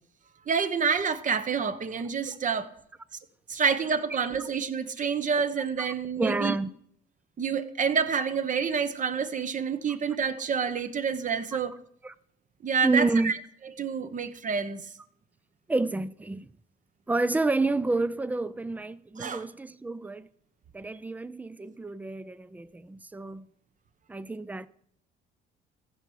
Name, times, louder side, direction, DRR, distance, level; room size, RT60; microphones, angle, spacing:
voice 1, 0.5-2.7 3.5-6.5 7.4-11.7 12.6-13.3 13.8-14.8 19.2-19.4, right 6 dB, 40° right, 1.1 m, -28 dB
voice 2, 5.8-6.7 11.5-11.6 12.0-12.1 12.8-13.3 15.7-16.5 17.1-20.3 20.7-23.5 24.1-24.7, right 3 dB, 10° right, 0.4 m, -29 dB
15.0 x 5.6 x 4.8 m
supercardioid pair, 85°, 20 cm